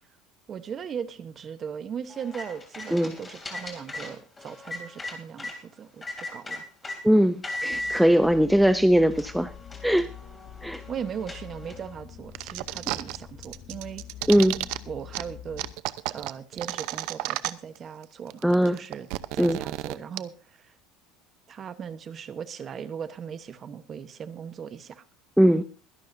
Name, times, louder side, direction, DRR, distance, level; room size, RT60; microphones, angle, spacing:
voice 1, 0.5-6.0 6.3-6.9 10.9-14.1 14.9-15.7 16.1-19.1 19.3-20.7 21.5-25.0, right 7 dB, 30° right, 1.0 m, -38 dB
sound 1, 2.1-5.6 6.0-7.0 7.4-8.0 8.7-8.8 9.1-11.9, left 1 dB, 15° left, 2.8 m, -38 dB
voice 2, 7.0-9.5 9.8-10.1 10.6-10.8 14.3-14.7 18.4-18.8 19.4-19.6 25.4-25.6, equal, ahead, 0.5 m, -20 dB
sound 2, 7.7-15.7, left 9 dB, 40° left, 1.2 m, -45 dB
sound 3, 12.3-13.2 13.4-14.8 15.1-15.2 15.6-17.8 18.0-18.1 18.3-20.2, right 18 dB, 65° right, 0.7 m, -32 dB
22.0 x 11.5 x 2.7 m
cardioid pair, 145°, 0 cm